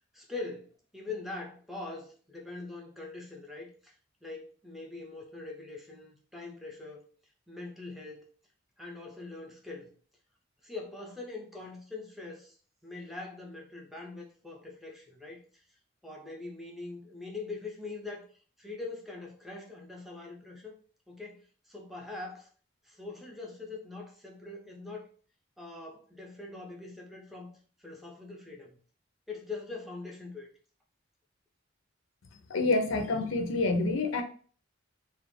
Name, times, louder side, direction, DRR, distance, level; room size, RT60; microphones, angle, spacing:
voice 1, 0.1-3.9 4.2-7.1 7.5-8.3 8.8-9.9 10.6-15.6 16.0-18.3 18.6-20.8 21.1-22.5 22.8-25.1 25.6-27.5 27.8-28.8 29.3-30.5, left 3 dB, ahead, 0.4 m, -43 dB
voice 2, 32.5-34.2, left 3 dB, 85° left, 0.5 m, -27 dB
2.4 x 2.0 x 3.1 m
head